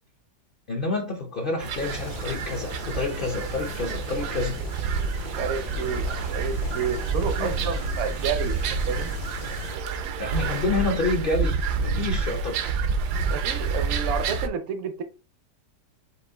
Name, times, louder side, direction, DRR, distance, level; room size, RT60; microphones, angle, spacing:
voice 1, 0.7-4.6 7.4-7.5 10.2-12.7, left 3 dB, 65° left, 0.5 m, -28 dB
sound 1, 1.6-14.5, right 4 dB, 75° right, 1.1 m, -28 dB
sound 2, 1.8-9.8, left 8 dB, 80° left, 1.2 m, -40 dB
voice 2, 4.8-8.6 8.9-9.1 13.3-15.0, right 6 dB, 60° right, 0.8 m, -30 dB
5.2 x 2.5 x 3.8 m
omnidirectional pair, 1.8 m